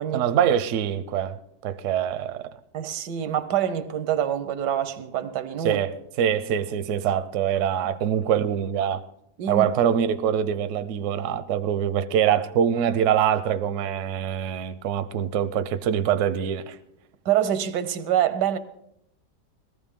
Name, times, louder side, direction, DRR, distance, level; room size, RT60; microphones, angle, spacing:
voice 1, 0.1-2.6 5.6-9.0 9.5-16.8, right 9 dB, 65° right, 0.8 m, -24 dB
voice 2, 2.7-5.8 9.4-9.7 17.2-18.6, right 10 dB, 90° right, 1.4 m, -25 dB
19.5 x 14.0 x 3.6 m
omnidirectional pair, 1.8 m